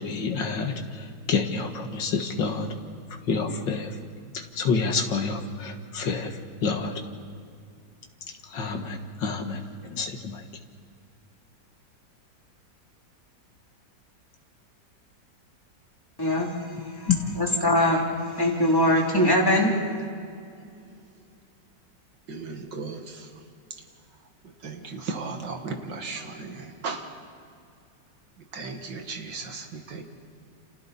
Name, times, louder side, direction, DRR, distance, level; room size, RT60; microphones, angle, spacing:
voice 1, 0.0-2.7 3.3-3.9 4.3-6.9 8.5-10.4 17.1-17.2, left 5 dB, 90° left, 4 dB, 2.3 m, -28 dB
voice 2, 16.2-16.5 17.0-17.1 17.4-18.0 18.4-19.7, left 1 dB, 10° left, -2 dB, 3.2 m, -21 dB
voice 3, 22.3-23.3 24.6-27.1 28.5-30.0, right 4 dB, 75° right, 4 dB, 2.5 m, -36 dB
29.5 x 28.0 x 4.2 m, 2.3 s
omnidirectional pair, 1.9 m